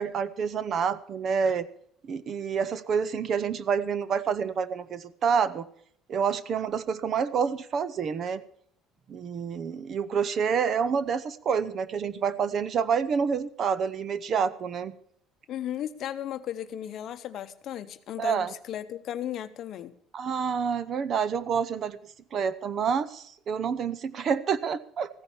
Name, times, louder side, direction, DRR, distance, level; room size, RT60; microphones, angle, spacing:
voice 1, 0.0-1.7 2.1-5.7 6.1-8.4 9.1-15.0 18.2-18.5 20.1-22.0 22.3-25.1, right 6 dB, 35° right, 17 dB, 0.7 m, -28 dB
voice 2, 15.5-19.9, left 11 dB, 45° left, 12 dB, 0.9 m, -35 dB
15.0 x 9.7 x 7.1 m, 0.63 s
cardioid pair, 170°, 0 cm